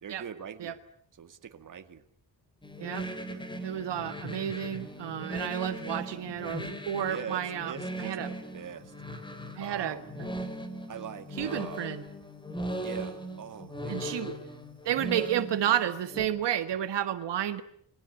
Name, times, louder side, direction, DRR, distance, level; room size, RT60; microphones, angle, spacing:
voice 1, 0.0-0.8 1.2-2.0 3.3-3.4 7.0-8.9 9.6-10.1 10.9-11.9 12.8-14.1, right 8 dB, 50° right, 8 dB, 2.1 m, -43 dB
sound 1, 2.6-16.3, equal, 10° left, 3.7 m, -39 dB
voice 2, 3.6-8.3 9.6-10.0 11.4-12.0 13.9-14.3 14.9-17.6, right 10 dB, 80° right, 10 dB, 1.7 m, -31 dB
29.5 x 22.5 x 8.3 m, 0.63 s
wide cardioid pair, 160°, 41 cm